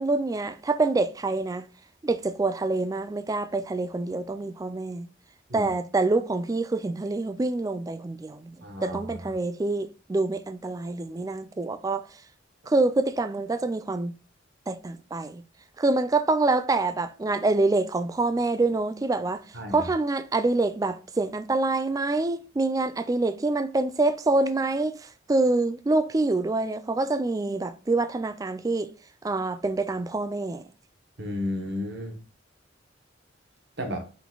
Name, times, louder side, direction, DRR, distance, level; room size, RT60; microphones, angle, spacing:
voice 1, 0.0-1.7 2.0-5.1 5.5-12.1 12.7-14.1 14.7-15.4 15.8-19.4 19.7-28.9 29.2-30.6, right 2 dB, 20° right, 0.3 m, -26 dB
voice 2, 8.6-9.3 19.5-19.8 31.2-32.2 33.8-34.1, left 1 dB, 60° right, 1.0 m, -33 dB
5.8 x 3.8 x 2.3 m
head